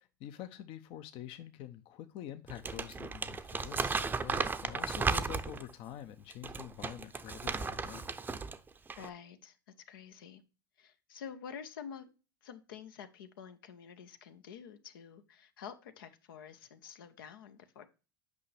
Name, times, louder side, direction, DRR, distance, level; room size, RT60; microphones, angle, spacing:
voice 1, 0.0-8.2, left 11 dB, 55° left, 9 dB, 0.7 m, -46 dB
Crumpling crinkling, 2.5-5.7 6.3-8.6 8.9-9.1, right 4 dB, 15° right, 0.6 m, -35 dB
voice 2, 9.0-10.4 10.8-12.1 12.4-17.9, left 7 dB, 80° left, 9 dB, 1.0 m, -48 dB
8.5 x 5.7 x 3.3 m, 0.32 s
hypercardioid pair, 95°, 11 cm